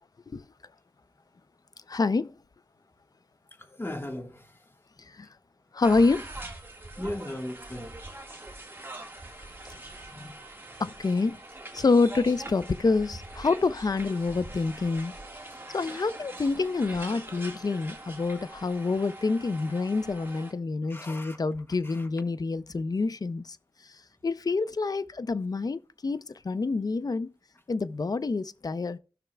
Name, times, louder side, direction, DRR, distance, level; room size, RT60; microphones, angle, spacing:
voice 1, 1.9-2.3 5.2-5.3 5.7-6.3 10.8-11.3 11.7-15.1 15.7-23.6 24.2-27.3 27.7-29.0, left 3 dB, 50° left, 0.4 m, -27 dB
voice 2, 3.7-4.5 7.0-7.9 10.1-10.3 20.9-21.4 21.8-22.0, left 1 dB, 25° left, 1.4 m, -37 dB
sound 1, 5.8-20.5, right 2 dB, 25° right, 1.6 m, -43 dB
16.5 x 5.9 x 2.2 m
wide cardioid pair, 90°, 9 cm